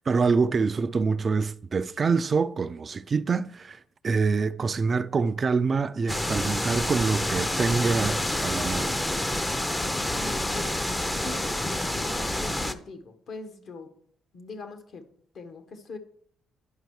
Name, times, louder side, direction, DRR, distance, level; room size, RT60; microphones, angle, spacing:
voice 1, 0.0-9.0, right 4 dB, 40° right, 0.4 m, -26 dB
sound 1, 6.1-12.7, left 1 dB, 15° left, 0.7 m, -28 dB
voice 2, 10.1-10.8 11.2-13.9 14.3-15.0 15.3-16.0, left 3 dB, 60° left, 1.3 m, -41 dB
10.5 x 5.5 x 4.7 m
cardioid pair, 90°, 0 cm